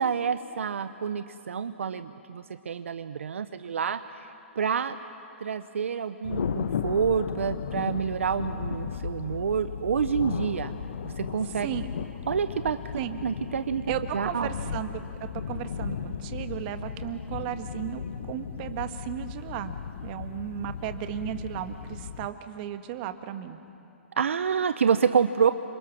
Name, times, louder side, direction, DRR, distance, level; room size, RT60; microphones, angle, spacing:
voice 1, 0.0-4.3 4.6-5.0 5.4-10.8 11.0-11.7 12.3-12.9 13.2-13.8 14.1-14.5 24.2-25.5, right 7 dB, 75° right, 11 dB, 0.9 m, -28 dB
Thunder, 6.2-22.3, left 7 dB, 70° left, 1.0 m, -35 dB
voice 2, 13.9-19.7 20.0-23.6, right 11 dB, 40° right, 8 dB, 1.7 m, -35 dB
29.5 x 27.0 x 6.3 m, 3.0 s
hypercardioid pair, 120°, 7 cm